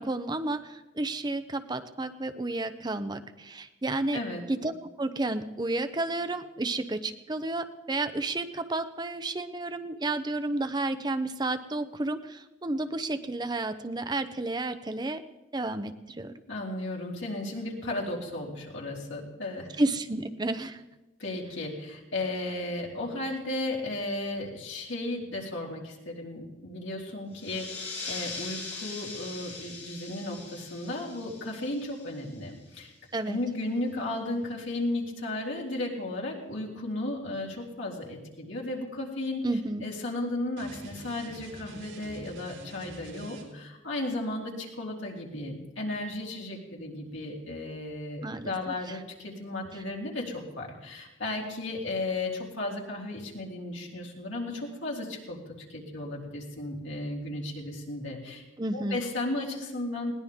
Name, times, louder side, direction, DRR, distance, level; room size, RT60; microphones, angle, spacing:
voice 1, 0.0-4.2 4.5-15.2 15.5-16.3 19.8-20.8 33.1-33.4 39.4-39.9 48.2-49.0 58.6-59.0, right 2 dB, 20° right, 10 dB, 0.6 m, -31 dB
voice 2, 16.5-19.7 21.2-32.9 33.3-39.4 39.8-55.4 55.7-58.4 58.7-60.1, left 2 dB, 80° left, -2 dB, 3.7 m, -34 dB
sound 1, 27.3-32.5, left 3 dB, 35° left, 4.3 m, -41 dB
sound 2, 40.5-43.8, right 2 dB, 80° right, 3.8 m, -46 dB
21.0 x 18.0 x 3.6 m, 1.1 s
head